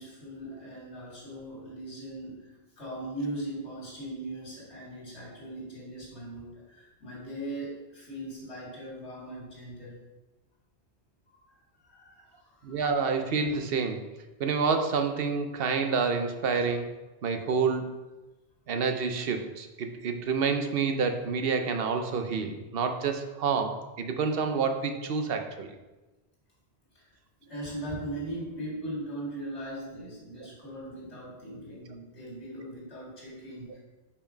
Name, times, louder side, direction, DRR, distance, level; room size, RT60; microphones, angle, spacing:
voice 1, 0.0-10.0 11.9-12.8 26.9-27.1 27.4-33.8, right 1 dB, 90° left, -5 dB, 2.7 m, -39 dB
voice 2, 12.6-14.0 14.4-16.9 17.2-17.8 18.7-25.7, right 5 dB, 65° right, 6 dB, 0.9 m, -28 dB
5.3 x 4.8 x 5.0 m, 1.1 s
omnidirectional pair, 1.1 m